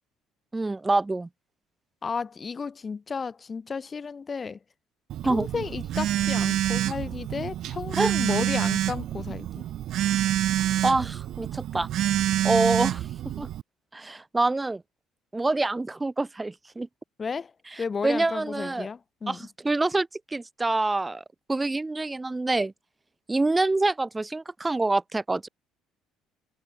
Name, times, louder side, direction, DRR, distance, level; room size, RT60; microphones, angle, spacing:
voice 1, 0.5-1.3 5.2-5.5 8.0-8.1 10.8-11.9 12.4-13.1 13.4-13.5 13.9-14.8 15.3-16.9 18.0-18.9 19.3-22.7 23.3-25.5, right 2 dB, 15° right, 5.1 m, -26 dB
voice 2, 2.0-4.6 5.2-9.6 17.2-17.5 17.8-19.5, left 5 dB, 30° left, 3.8 m, -33 dB
Telephone, 5.1-13.6, right 12 dB, 65° right, 1.5 m, -27 dB
supercardioid pair, 85°, 0 cm